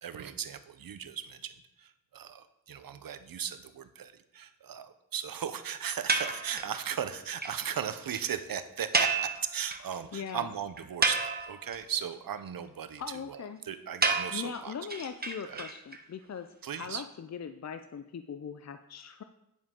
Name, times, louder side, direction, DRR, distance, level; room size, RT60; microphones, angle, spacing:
voice 1, 0.0-14.8 15.4-15.6 16.6-17.0, right 8 dB, 80° right, 11 dB, 0.7 m, -37 dB
sound 1, 6.1-6.8 7.1-7.2 7.4-7.5 7.8-7.9 8.1-8.2 8.9-9.9 10.3-10.4 10.8-11.8 14.0-16.0, right 3 dB, 30° right, 1.1 m, -30 dB
voice 2, 10.1-10.5 13.0-13.6 14.3-16.5 16.8-19.2, left 7 dB, 50° left, 9 dB, 0.5 m, -40 dB
9.9 x 7.3 x 3.7 m, 0.84 s
cardioid pair, 60°, 34 cm